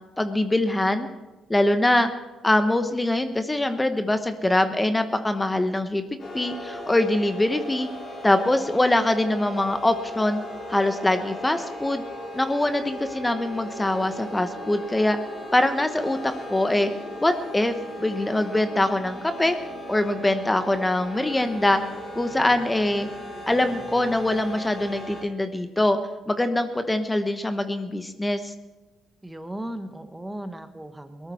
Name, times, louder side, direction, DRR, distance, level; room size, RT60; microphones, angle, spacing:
voice 1, 0.2-1.1 1.5-2.1 2.4-6.0 6.3-7.9 8.2-10.4 10.7-12.0 12.3-15.2 15.5-16.9 17.2-19.6 19.9-21.8 22.1-23.1 23.5-26.0 26.3-28.5, left 1 dB, 15° left, 8 dB, 1.1 m, -23 dB
sound 1, 6.2-25.2, left 1 dB, 45° left, 3.9 m, -37 dB
voice 2, 29.2-31.3, right 1 dB, 10° right, 9 dB, 1.2 m, -36 dB
18.0 x 13.0 x 4.4 m, 1.1 s
supercardioid pair, 65°, 0 cm